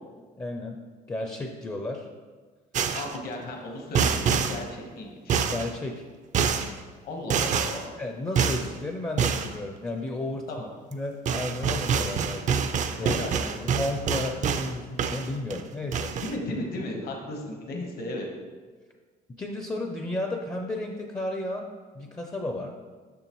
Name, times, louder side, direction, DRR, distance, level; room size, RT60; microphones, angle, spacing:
voice 1, 0.4-0.8 1.1-2.1 5.5-6.0 8.0-10.5 10.9-13.2 13.6-16.1 19.4-22.7, left 2 dB, 20° left, 4 dB, 0.5 m, -33 dB
sound 1, 2.7-3.2 3.9-4.6 5.3-5.7 6.3-6.7 7.3-7.8 8.4-8.7 9.2-9.5 10.9-11.0 11.3-14.7 15.0-15.6 15.9-16.3, right 6 dB, 45° right, 0.4 m, -26 dB
voice 2, 2.9-5.4 7.0-7.8 10.5-10.7 13.0-13.5 16.2-18.3, left 1 dB, 65° left, 2 dB, 1.2 m, -35 dB
6.9 x 5.8 x 3.0 m, 1.4 s
cardioid pair, 110°, 17 cm